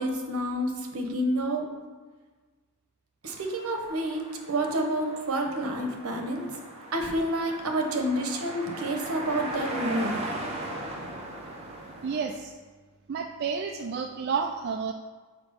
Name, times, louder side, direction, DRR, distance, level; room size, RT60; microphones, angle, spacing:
voice 1, 0.0-1.6 3.2-6.6 6.9-10.2, right 1 dB, 70° right, 3 dB, 1.0 m, -29 dB
sound 1, 3.3-12.2, right 1 dB, 30° right, 1.1 m, -38 dB
voice 2, 12.0-12.5 13.1-14.9, right 6 dB, 45° right, 3 dB, 0.3 m, -30 dB
6.0 x 4.5 x 5.1 m, 1.4 s
head